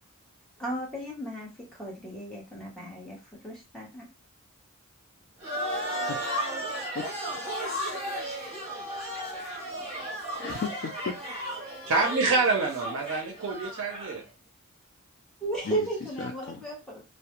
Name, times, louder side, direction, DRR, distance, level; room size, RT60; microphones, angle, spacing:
voice 1, 0.6-4.1 15.4-17.0, right 2 dB, 5° left, -4 dB, 0.8 m, -35 dB
sound 1, 5.4-14.2, equal, 25° right, 0.9 m, -34 dB
voice 2, 8.8-9.5 10.3-11.2 15.6-15.9 16.2-16.6, left 5 dB, 50° left, 2 dB, 0.3 m, -36 dB
voice 3, 11.9-14.2, right 3 dB, 55° right, 1 dB, 0.5 m, -26 dB
2.3 x 2.0 x 2.9 m, 0.28 s
head